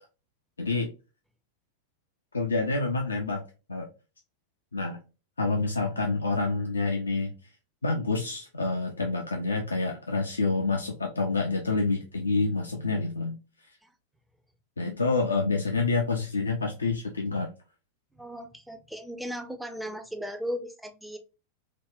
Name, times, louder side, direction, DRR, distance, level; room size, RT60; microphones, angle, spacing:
voice 1, 0.6-0.9 2.3-3.4 3.7-3.9 4.7-5.0 5.4-7.3 7.8-13.7 14.8-17.5, left 3 dB, 75° left, 3 dB, 0.3 m, -28 dB
voice 2, 18.1-21.2, equal, ahead, 7 dB, 0.4 m, -36 dB
3.4 x 2.1 x 2.2 m, 0.31 s
figure-of-eight pair, 90°, 0 cm